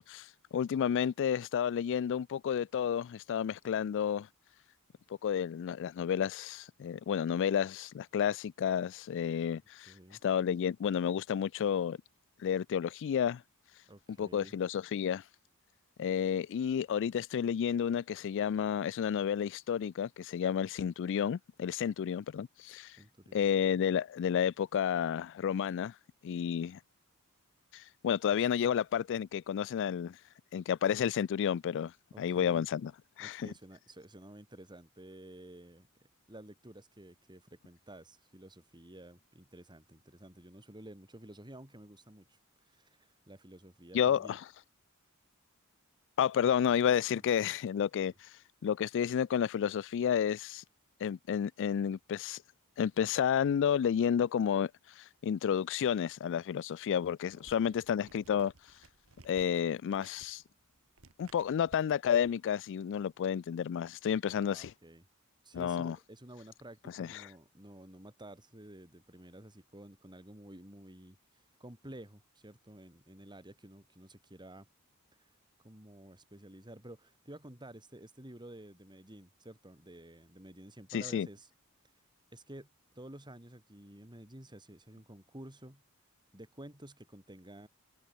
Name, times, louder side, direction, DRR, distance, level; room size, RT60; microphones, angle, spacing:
voice 1, 0.0-4.3 5.2-9.9 10.2-12.0 12.4-13.4 14.2-15.2 16.0-23.0 23.3-25.9 26.2-26.8 27.7-30.2 30.5-32.9 33.2-33.5 43.9-44.4 46.2-48.3 48.6-50.6 51.0-52.4 52.8-54.7 55.0-58.5 59.2-60.4 61.2-64.7 65.5-66.0 67.0-67.3 80.9-81.3, left 8 dB, 55° left, 0.3 m, -31 dB
voice 2, 9.9-10.2 13.9-14.5 23.0-23.4 28.3-28.4 32.1-32.7 33.2-35.9 36.3-44.4 48.0-48.1 57.4-57.8 64.3-65.1 65.4-74.7 75.2-81.5 81.8-82.0 82.3-82.7 82.9-85.8 86.3-87.7, right 1 dB, 20° right, 5.1 m, -52 dB
sound 1, 57.3-61.9, right 3 dB, 70° right, 2.0 m, -60 dB
head